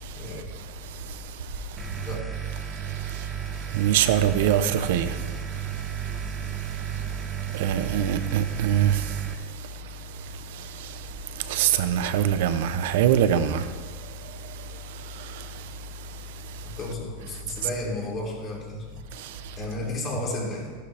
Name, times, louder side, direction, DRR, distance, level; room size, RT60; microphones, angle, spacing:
voice 1, 0.1-0.6 2.0-2.3 16.6-19.0 19.5-20.8, left 1 dB, 30° left, 3.4 m, -33 dB
sound 1, 1.8-9.3, right 11 dB, 15° right, 1.2 m, -33 dB
voice 2, 3.7-5.1 7.5-8.9 11.5-13.6, right 10 dB, 70° right, 0.9 m, -22 dB
14.0 x 12.0 x 3.5 m
supercardioid pair, 135°, 0 cm